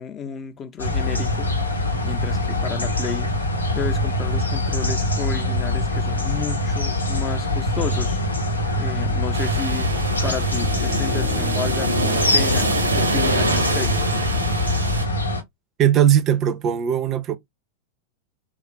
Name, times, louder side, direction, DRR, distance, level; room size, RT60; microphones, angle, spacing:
voice 1, 0.0-3.3 3.7-8.2 8.8-9.9 10.2-13.9, left 7 dB, 30° left, 0.6 m, -32 dB
sound 1, 0.8-15.4, left 1 dB, 80° left, 0.7 m, -23 dB
sound 2, 9.3-15.1, right 1 dB, 80° right, 0.7 m, -25 dB
voice 2, 15.8-17.4, right 10 dB, 30° right, 0.5 m, -19 dB
3.1 x 2.4 x 2.9 m
figure-of-eight pair, 90°, 0 cm